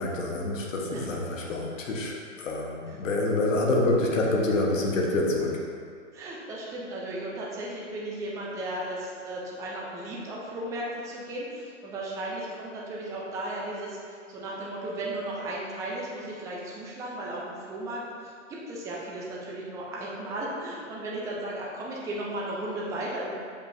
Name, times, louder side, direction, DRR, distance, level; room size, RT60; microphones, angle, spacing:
voice 1, 0.0-5.6, left 2 dB, 80° left, -1 dB, 1.3 m, -27 dB
voice 2, 6.1-23.3, right 1 dB, 10° right, -5 dB, 0.5 m, -35 dB
6.9 x 5.3 x 2.7 m, 2.2 s
hypercardioid pair, 140°, 38 cm